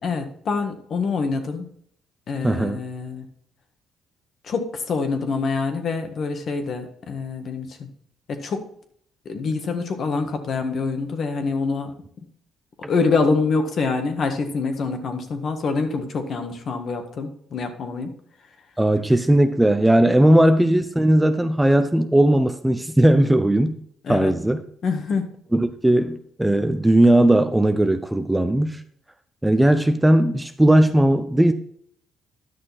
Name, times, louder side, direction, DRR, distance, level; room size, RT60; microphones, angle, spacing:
voice 1, 0.0-1.7 2.3-3.2 4.4-7.9 8.3-8.6 9.2-11.9 12.9-18.1 24.0-24.3 24.8-25.3, left 4 dB, 50° left, 1.5 m, -25 dB
voice 2, 2.4-2.8 18.8-23.8 24.1-24.6 25.5-28.8 29.4-31.5, right 1 dB, 5° right, 0.6 m, -18 dB
11.0 x 6.3 x 4.3 m
cardioid pair, 100°, 0 cm